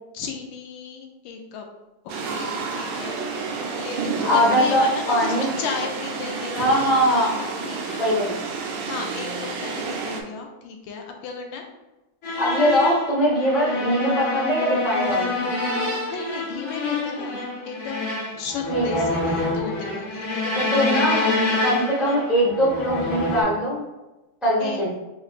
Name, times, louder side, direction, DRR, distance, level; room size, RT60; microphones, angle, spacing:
voice 1, 0.1-1.7 2.0-3.2 3.8-6.8 7.1-11.7 16.1-18.1 18.4-20.9 24.6-24.9, left 5 dB, 75° left, 3 dB, 1.3 m, -34 dB
sound 1, 2.1-10.2, right 4 dB, 75° right, 1.1 m, -30 dB
voice 2, 4.2-5.5 6.6-7.3 8.0-8.3 12.4-15.5 18.7-19.1 20.6-21.2 21.6-23.8 24.4-24.9, equal, ahead, -5 dB, 0.4 m, -21 dB
sound 2, 12.2-23.4, left 2 dB, 45° left, 1.1 m, -26 dB
5.1 x 2.9 x 2.4 m, 1.0 s
omnidirectional pair, 2.1 m